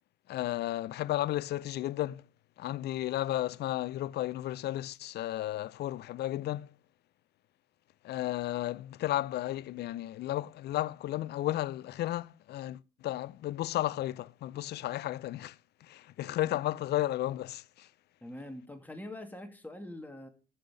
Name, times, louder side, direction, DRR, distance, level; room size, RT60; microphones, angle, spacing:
voice 1, 0.3-2.3 2.6-6.7 8.0-17.9, left 14 dB, 55° left, 0.5 m, -33 dB
voice 2, 18.2-20.3, left 1 dB, 10° left, 2.3 m, -44 dB
14.0 x 5.7 x 6.4 m
hypercardioid pair, 50°, 20 cm